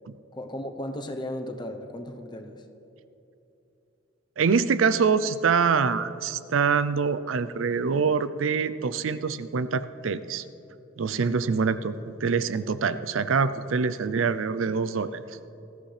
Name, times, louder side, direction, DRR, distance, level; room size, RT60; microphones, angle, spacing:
voice 1, 0.3-2.6, left 1 dB, 25° left, 5 dB, 0.8 m, -35 dB
voice 2, 4.4-10.4 11.0-15.4, right 5 dB, 85° right, 14 dB, 0.5 m, -25 dB
20.0 x 14.0 x 3.3 m, 3.0 s
head